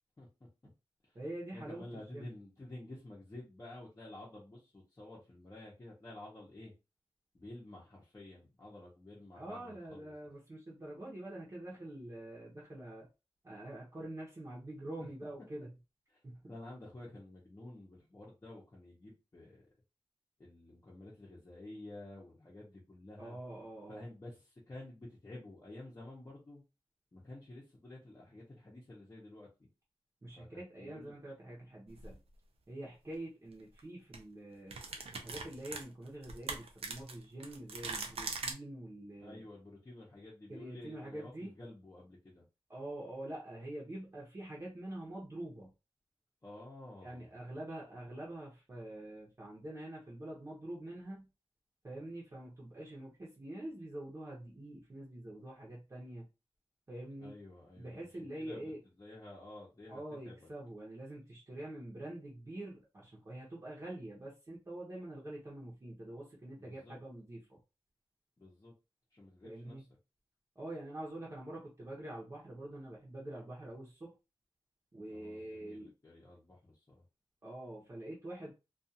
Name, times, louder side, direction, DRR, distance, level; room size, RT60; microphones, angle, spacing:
voice 1, 0.2-0.5 1.0-1.2 1.5-6.7 7.3-10.1 16.1-16.2 16.5-19.6 20.4-23.4 23.9-26.6 27.1-29.7 30.3-31.2 39.2-42.4 46.4-47.3 57.2-60.5 66.6-67.0 68.4-68.7 69.1-70.0 75.1-77.0, left 1 dB, 30° left, -6 dB, 0.8 m, -51 dB
voice 2, 1.1-1.8 2.1-2.3 9.4-13.1 13.4-15.7 16.2-16.5 23.2-24.0 30.2-32.2 32.7-34.8 35.1-39.4 40.5-41.5 42.7-45.7 47.0-51.3 51.8-56.2 56.9-57.3 57.8-58.8 59.9-67.6 69.4-69.8 70.6-74.1 74.9-75.9 77.4-78.5, right 1 dB, 30° right, -5 dB, 0.8 m, -45 dB
sound 1, 31.9-32.1 33.6-33.8 34.1-34.2 34.7-38.5, right 4 dB, 80° right, 0.5 m, -41 dB
2.4 x 2.4 x 2.7 m, 0.28 s
wide cardioid pair, 120°, 10 cm